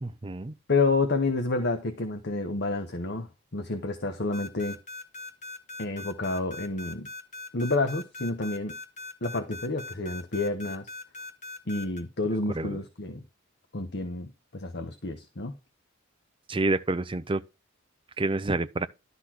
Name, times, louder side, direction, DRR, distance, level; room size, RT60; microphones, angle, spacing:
voice 1, 0.0-0.6 12.5-12.8 16.5-17.4 18.2-18.9, right 2 dB, 25° right, 0.6 m, -28 dB
voice 2, 0.7-3.3 3.5-4.8 5.8-7.1 7.5-8.8 9.2-10.9 11.7-13.2 13.7-15.5, left 3 dB, 55° left, 1.1 m, -29 dB
sound 1, 4.3-12.0, left 3 dB, 35° left, 1.9 m, -40 dB
12.0 x 4.1 x 6.0 m
head